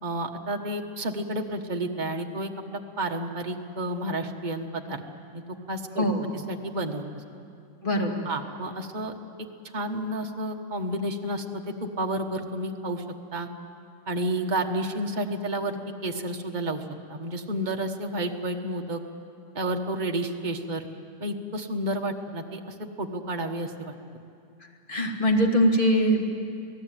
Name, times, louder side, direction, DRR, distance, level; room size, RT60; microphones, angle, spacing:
voice 1, 0.0-5.0 5.3-5.4 5.7-6.1 6.5-7.3 8.2-9.1 9.7-13.0 13.3-13.5 14.1-16.8 17.1-19.0 19.5-20.9 21.2-23.9, right 1 dB, 25° right, 3 dB, 1.4 m, -31 dB
voice 2, 7.8-8.3 24.9-26.3, equal, 25° left, 0 dB, 2.7 m, -22 dB
27.5 x 18.0 x 9.1 m, 2.5 s
omnidirectional pair, 2.0 m